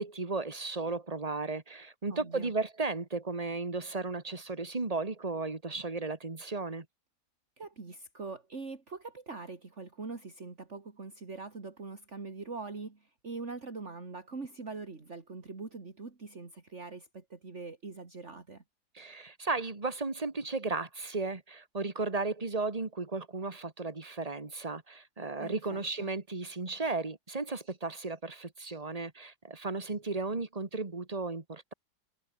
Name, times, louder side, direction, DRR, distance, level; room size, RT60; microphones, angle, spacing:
voice 1, 0.0-6.9 18.9-31.7, right 3 dB, 20° right, 2.1 m, -35 dB
voice 2, 2.1-2.5 7.6-18.6 25.4-26.1, right 4 dB, 45° right, 2.9 m, -43 dB
omnidirectional pair, 1.8 m